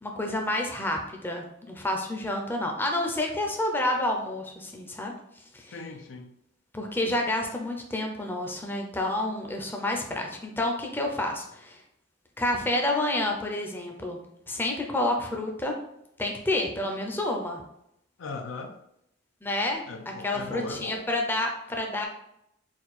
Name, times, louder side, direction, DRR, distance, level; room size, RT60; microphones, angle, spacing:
voice 1, 0.0-5.1 5.5-5.8 6.7-11.8 12.4-14.2 14.5-15.7 16.2-17.6 19.4-22.1, left 1 dB, 10° left, 0.6 m, -29 dB
voice 2, 5.7-6.3 18.2-18.8 19.9-21.1, left 3 dB, 75° left, 0.5 m, -38 dB
4.4 x 2.3 x 4.1 m
head